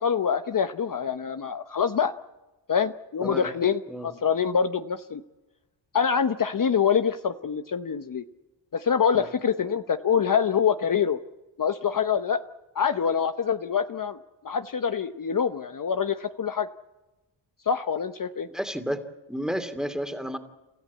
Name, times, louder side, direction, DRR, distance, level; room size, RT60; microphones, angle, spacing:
voice 1, 0.0-2.1 2.7-5.2 5.9-8.2 8.7-11.2 11.6-12.4 12.7-14.2 14.4-16.7 17.7-18.5, left 7 dB, 45° left, 9 dB, 0.9 m, -25 dB
voice 2, 18.5-19.0 19.3-20.4, equal, ahead, 9 dB, 2.6 m, -31 dB
29.5 x 14.5 x 8.4 m, 1.1 s
cardioid pair, 75°, 47 cm